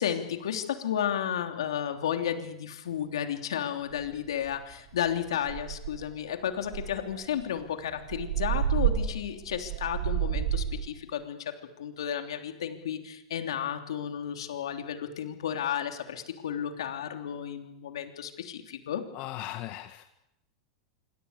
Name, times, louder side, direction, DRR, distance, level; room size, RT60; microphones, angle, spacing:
voice 1, 0.0-19.0, left 9 dB, 75° left, 5 dB, 3.2 m, -33 dB
sound 1, 4.0-4.1 4.5-4.7 5.1-5.2 5.4-6.1 6.7-10.9, right 10 dB, 60° right, 5.1 m, -30 dB
voice 2, 19.1-20.0, left 14 dB, 50° left, 7 dB, 1.7 m, -38 dB
26.5 x 24.5 x 6.9 m, 0.85 s
hypercardioid pair, 95°, 3 cm